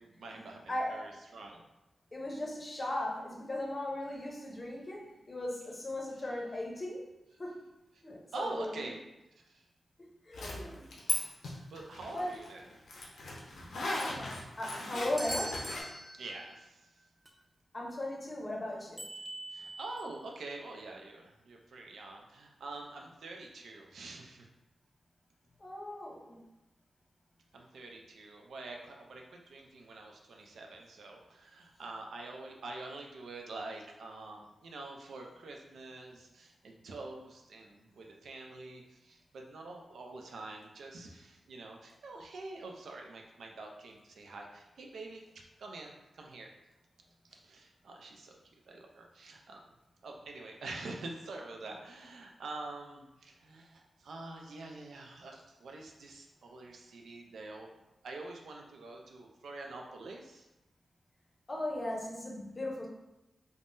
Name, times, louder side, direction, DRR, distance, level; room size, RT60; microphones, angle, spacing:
voice 1, 0.0-1.6 6.2-6.3 8.3-9.0 9.4-9.6 11.5-12.7 13.0-13.1 16.2-16.9 19.5-24.5 27.5-46.5 47.2-48.4 48.7-49.6 50.0-57.7 58.0-60.5, right 2 dB, 90° right, 1 dB, 0.4 m, -46 dB
voice 2, 0.7-1.1 2.1-7.1 7.4-7.7 8.0-8.9 10.3-10.9 12.1-12.3 14.0-15.6 17.7-19.1 25.6-26.4 61.5-62.9, left 1 dB, 30° left, -2 dB, 0.6 m, -38 dB
Zipper (clothing), 10.3-11.2 11.4-15.8, left 2 dB, 85° left, 0.6 m, -37 dB
sound 1, 15.2-16.7 17.3-17.4 19.0-20.1, right 1 dB, 10° right, 0.3 m, -42 dB
3.5 x 2.0 x 2.5 m, 0.95 s
wide cardioid pair, 110°, 0 cm